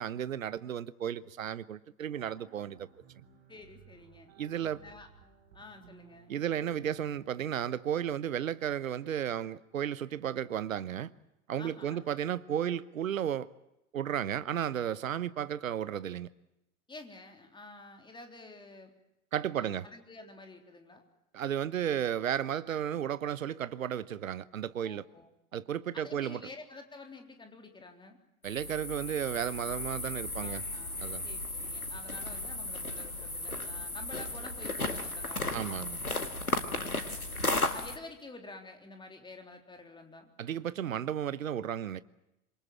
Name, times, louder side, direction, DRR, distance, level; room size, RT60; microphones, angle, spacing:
voice 1, 0.0-2.9 3.2-3.3 4.4-4.8 6.3-11.1 11.5-13.5 13.9-16.3 19.3-19.9 21.3-25.0 25.5-26.4 28.4-30.6 31.0-31.2 35.5-36.0 40.4-42.0, right 9 dB, 70° right, 1.1 m, -33 dB
sound 1, 2.1-7.3, right 3 dB, 50° right, 6.9 m, -57 dB
voice 2, 3.5-4.3 4.8-5.1 5.5-6.3 11.6-12.0 16.9-18.9 19.5-21.0 24.8-25.3 25.9-28.2 30.4-35.9 36.7-37.3 37.7-40.3, left 2 dB, 10° left, 3.8 m, -50 dB
sound 2, 28.4-38.0, left 2 dB, 85° left, 2.1 m, -35 dB
26.5 x 23.0 x 7.5 m
figure-of-eight pair, 90°, 43 cm